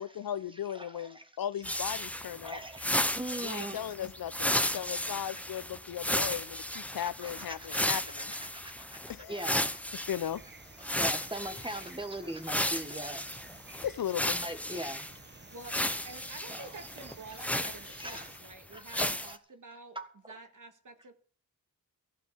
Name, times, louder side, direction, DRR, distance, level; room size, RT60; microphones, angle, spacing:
voice 1, 0.0-2.6 3.4-8.3 9.1-9.6 10.1-10.4 13.8-14.4, left 10 dB, 75° left, 0.7 m, -37 dB
voice 2, 0.7-1.3 2.4-3.8 4.6-5.2 6.9-7.8 8.5-9.9 10.9-13.3 14.3-15.0 16.5-16.8 17.9-18.3 18.7-19.4 19.9-20.1, right 1 dB, 15° right, 1.6 m, -41 dB
sound 1, 1.6-10.3 10.8-12.0 12.4-15.1 15.6-18.5 18.9-19.3, left 1 dB, 5° left, 0.7 m, -34 dB
voice 3, 3.6-4.1 15.5-15.8 16.0-20.0 20.3-21.1, right 3 dB, 60° right, 1.9 m, -49 dB
sound 2, 9.2-18.4, right 3 dB, 30° right, 1.0 m, -53 dB
15.0 x 5.8 x 8.5 m
wide cardioid pair, 105°, 36 cm